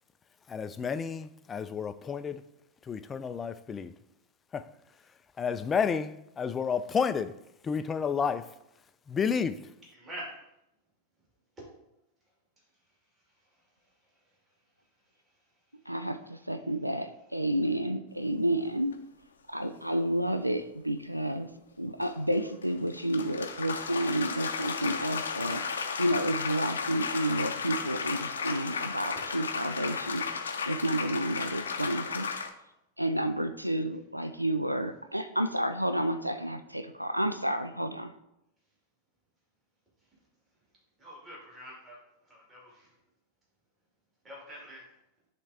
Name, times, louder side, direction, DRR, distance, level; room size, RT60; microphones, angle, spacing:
voice 1, 0.5-2.4 2.9-3.9 4.5-4.7 5.4-7.3 7.6-8.5 9.1-9.6, left 6 dB, 20° left, 0.3 m, -31 dB
voice 2, 10.0-10.3 41.0-42.0 42.3-42.9 44.2-44.8, equal, 20° right, 2.4 m, -44 dB
voice 3, 15.9-18.9 19.5-21.5 21.8-32.3 33.0-38.1, right 1 dB, 90° right, 0.3 m, -30 dB
sound 1, 18.9-19.0 22.0-32.5, left 5 dB, 70° left, 0.5 m, -34 dB
10.0 x 3.4 x 2.8 m
figure-of-eight pair, 90°, 0 cm